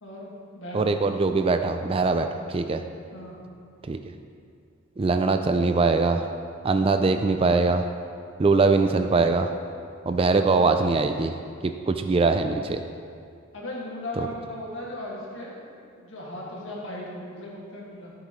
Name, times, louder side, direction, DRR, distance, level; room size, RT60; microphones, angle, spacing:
voice 1, 0.0-0.9 3.1-3.4 13.5-15.5 15.9-18.1, left 1 dB, 60° left, -4 dB, 2.0 m, -37 dB
voice 2, 0.7-2.8 3.9-4.0 5.0-6.2 6.6-7.8 8.4-9.5 10.1-11.3 11.6-12.8 14.2-14.3, right 3 dB, 25° right, 7 dB, 0.3 m, -22 dB
13.5 x 7.7 x 3.2 m, 2.3 s
head